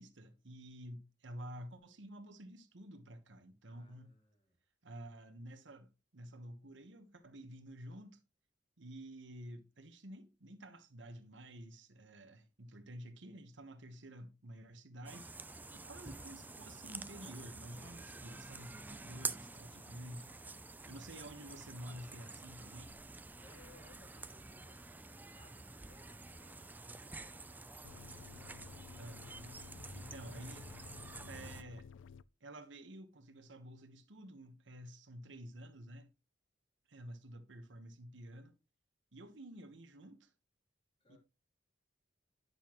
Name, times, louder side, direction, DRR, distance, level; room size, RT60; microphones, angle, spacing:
voice 1, 0.0-4.1 4.8-8.2 8.8-15.3 15.7-20.3 20.9-23.0 29.0-29.5 29.9-30.7 31.2-31.9 32.4-36.1 36.9-38.5 39.1-40.3 41.1-41.2, right 1 dB, 70° right, 1.1 m, -51 dB
voice 2, 3.7-4.6 15.8-16.1 20.7-21.2 23.4-28.9 41.0-41.2, left 2 dB, 30° left, 3.1 m, -66 dB
sound 1, 15.1-31.6, right 3 dB, 10° right, 0.4 m, -48 dB
sound 2, 27.8-32.2, left 6 dB, 85° left, 0.4 m, -54 dB
10.5 x 6.7 x 3.0 m
head